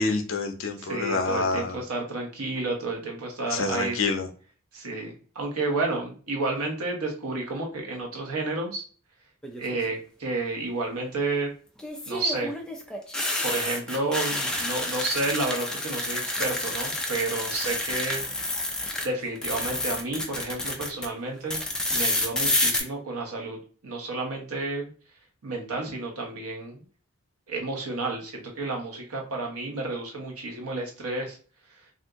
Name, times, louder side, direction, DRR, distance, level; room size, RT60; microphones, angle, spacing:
voice 1, 0.0-1.8 3.5-4.3, left 3 dB, 60° left, 5 dB, 0.6 m, -27 dB
voice 2, 0.8-4.0 4.7-8.8 9.6-11.5 12.1-12.5 13.4-18.2 19.0-21.6 21.9-24.9 25.4-26.8 27.5-31.4, right 2 dB, 90° right, 0 dB, 1.0 m, -31 dB
sound 1, 9.4-9.9 11.8-19.1 19.4-21.1 21.5-22.8, left 1 dB, 5° left, 0.4 m, -29 dB
2.7 x 2.6 x 3.5 m, 0.41 s
head